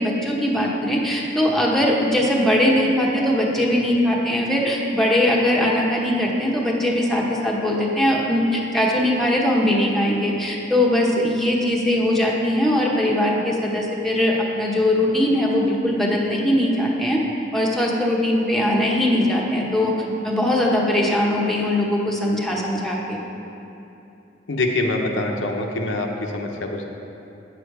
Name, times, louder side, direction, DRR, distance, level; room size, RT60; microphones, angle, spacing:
voice 1, 0.0-17.2 17.5-19.9 20.2-23.2, left 1 dB, ahead, -3 dB, 0.9 m, -20 dB
voice 2, 24.5-26.8, left 2 dB, 85° left, 2 dB, 0.8 m, -24 dB
8.9 x 6.9 x 4.7 m, 2.8 s
head